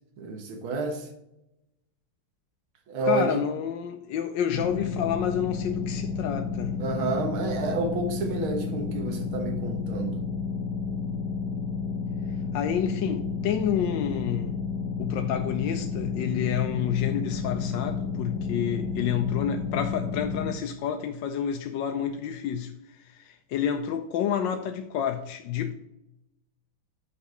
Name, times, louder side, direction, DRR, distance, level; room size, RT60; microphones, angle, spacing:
voice 1, 0.2-1.1 2.9-3.4 6.8-10.2, right 3 dB, 90° right, 2.1 m, -30 dB
voice 2, 3.1-6.8 12.5-14.5 15.0-25.7, left 9 dB, 75° left, 1.2 m, -29 dB
sound 1, 4.5-20.5, left 5 dB, 55° left, 1.1 m, -31 dB
5.9 x 5.6 x 6.5 m
omnidirectional pair, 2.2 m